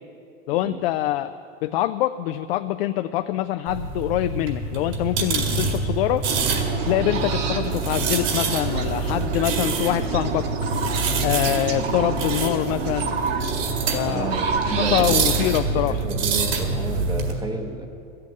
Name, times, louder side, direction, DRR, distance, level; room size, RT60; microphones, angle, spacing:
voice 1, 0.5-1.3 1.6-6.2 6.8-10.4 11.2-13.1 13.9-14.3 14.8-16.0, left 14 dB, 50° left, 9 dB, 0.5 m, -24 dB
sound 1, 3.7-17.3, right 4 dB, 45° right, 2.1 m, -26 dB
sound 2, 6.2-15.6, right 5 dB, 70° right, 1.6 m, -29 dB
voice 2, 14.1-15.4 15.7-17.9, right 3 dB, 10° right, 4 dB, 0.9 m, -31 dB
12.5 x 7.7 x 9.2 m, 2.5 s
hypercardioid pair, 130°, 39 cm